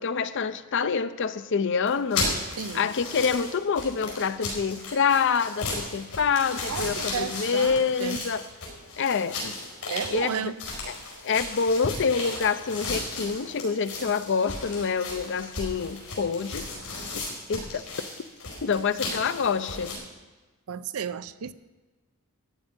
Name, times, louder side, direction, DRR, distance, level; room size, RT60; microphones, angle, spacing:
voice 1, 0.0-2.3 2.7-8.5 9.0-9.5 10.1-10.5 10.9-11.0 11.2-17.2 17.5-18.1 18.6-20.0, left 6 dB, 55° left, 0.5 m, -27 dB
sound 1, 1.9-20.0, left 2 dB, 85° left, 4.8 m, -35 dB
voice 2, 2.6-2.9 6.7-8.2 9.9-10.6 20.7-21.5, right 6 dB, 75° right, 0.5 m, -33 dB
13.5 x 9.4 x 5.2 m
head